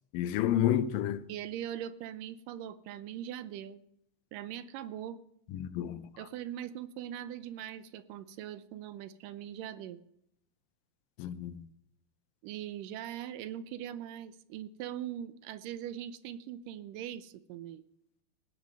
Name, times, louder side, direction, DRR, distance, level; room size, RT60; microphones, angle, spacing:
voice 1, 0.1-1.2 5.5-6.1 11.2-11.6, left 11 dB, 85° left, 2.4 m, -30 dB
voice 2, 1.3-3.8 4.3-5.2 6.2-10.0 12.4-17.8, right 11 dB, 80° right, 2.3 m, -41 dB
17.5 x 9.3 x 5.5 m
omnidirectional pair, 3.9 m